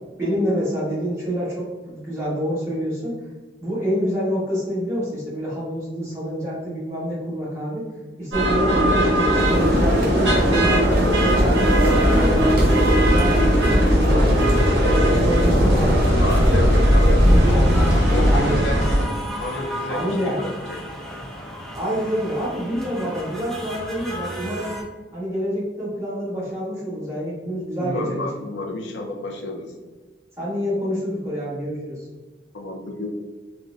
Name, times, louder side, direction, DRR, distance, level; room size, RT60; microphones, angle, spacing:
voice 1, 0.2-3.1 3.6-7.8 8.2-13.6 14.0-16.4 17.0-17.9 18.3-18.6 19.9-20.4 21.7-24.7 25.1-28.3 30.4-32.0, equal, 15° right, -9 dB, 1.2 m, -27 dB
sound 1, 8.3-19.0, equal, 70° right, 1.0 m, -19 dB
sound 2, 9.3-18.5, equal, 50° right, 0.8 m, -22 dB
voice 2, 16.2-17.2 18.1-19.1 19.4-20.8 27.8-29.7 32.5-33.1, left 2 dB, 70° left, 3 dB, 0.5 m, -30 dB
sound 3, 17.2-24.8, equal, ahead, 0.3 m, -34 dB
3.8 x 2.2 x 2.4 m, 1.3 s
head